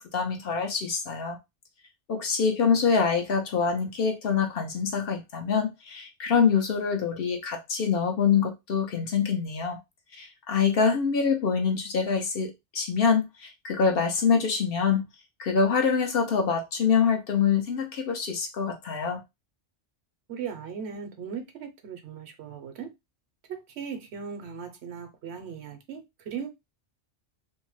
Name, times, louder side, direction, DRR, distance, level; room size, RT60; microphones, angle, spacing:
voice 1, 0.0-1.4 2.1-9.8 10.2-15.0 15.4-19.2, left 6 dB, 60° left, 0.7 m, -25 dB
voice 2, 20.3-22.9 23.5-26.5, right 7 dB, 70° right, 0.9 m, -38 dB
2.7 x 2.0 x 3.0 m
omnidirectional pair, 1.2 m